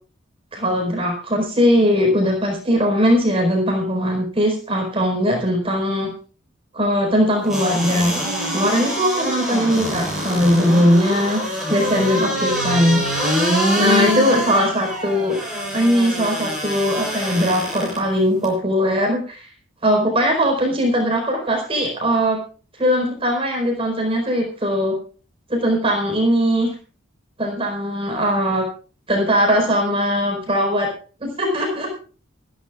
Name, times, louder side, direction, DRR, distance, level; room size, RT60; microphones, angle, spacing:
voice 1, 0.5-6.1 6.7-8.2 8.5-11.4 11.7-13.1 13.7-15.4 15.7-19.4 19.8-22.4 22.8-25.0 25.5-26.7 27.4-28.7 29.1-30.9 31.2-31.9, equal, 30° right, 1 dB, 4.7 m, -19 dB
sound 1, 7.5-18.0 18.4-18.5, equal, ahead, 7.8 m, -24 dB
21.0 x 14.5 x 2.4 m, 0.37 s
head